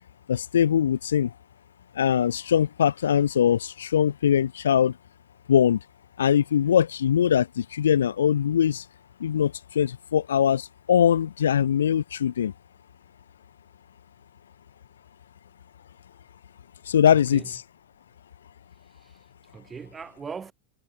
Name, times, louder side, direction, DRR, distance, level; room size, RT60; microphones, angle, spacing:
voice 1, 0.3-1.3 2.0-4.9 5.5-5.8 6.2-8.8 9.2-12.5 16.9-17.4, left 9 dB, 80° left, 0.4 m, -22 dB
voice 2, 17.1-17.5 18.9-20.5, right 6 dB, 20° right, 2.9 m, -40 dB
hypercardioid pair, 90°, 0 cm